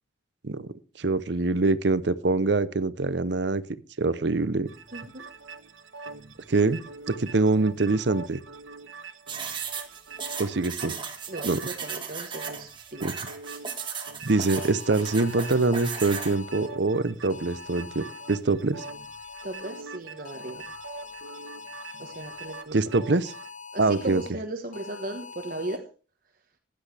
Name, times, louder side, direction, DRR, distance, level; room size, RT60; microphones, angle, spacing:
voice 1, 1.0-3.6 4.0-4.7 6.5-6.8 7.2-8.4 10.4-10.9 11.4-11.6 13.0-13.1 14.2-18.8 22.7-23.3 23.8-24.2, right 3 dB, 60° right, 15 dB, 0.7 m, -24 dB
sound 1, 4.7-23.5, right 4 dB, 85° right, 1.3 m, -44 dB
voice 2, 4.9-5.2 11.3-13.1 19.4-20.7 22.0-23.1 23.7-25.8, right 2 dB, 45° right, 4 dB, 1.3 m, -37 dB
sound 2, 9.3-16.4, right 6 dB, 25° right, 1.9 m, -36 dB
sound 3, 14.3-16.7 17.3-18.3 18.8-19.8 20.2-22.6 23.2-24.3 24.7-25.8, left 5 dB, 40° left, 1.3 m, -43 dB
15.5 x 10.5 x 3.4 m, 0.35 s
head